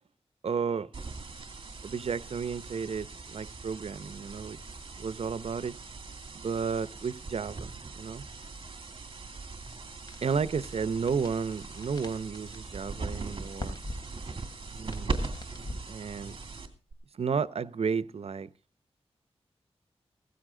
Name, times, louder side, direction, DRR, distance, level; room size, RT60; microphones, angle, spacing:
voice 1, 0.4-0.9 1.8-4.6 5.0-5.8 6.3-8.2 10.2-13.8 14.7-15.2 15.7-16.4 17.1-18.5, right 6 dB, 70° right, 0.7 m, -32 dB
sound 1, 0.9-16.9, right 3 dB, 50° right, 2.6 m, -40 dB
sound 2, 10.1-16.6, left 1 dB, 40° left, 3.3 m, -45 dB
16.5 x 15.0 x 3.8 m
wide cardioid pair, 105°, 11 cm